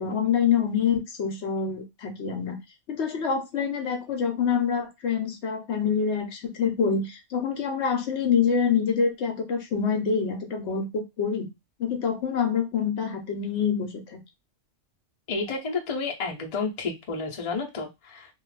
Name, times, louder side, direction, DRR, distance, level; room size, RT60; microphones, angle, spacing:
voice 1, 0.0-2.6 2.9-11.5 11.8-14.2, left 6 dB, 65° left, 4 dB, 0.9 m, -26 dB
voice 2, 15.3-18.3, left 4 dB, 40° left, 0 dB, 0.6 m, -31 dB
2.3 x 2.3 x 3.2 m, 0.21 s
omnidirectional pair, 1.3 m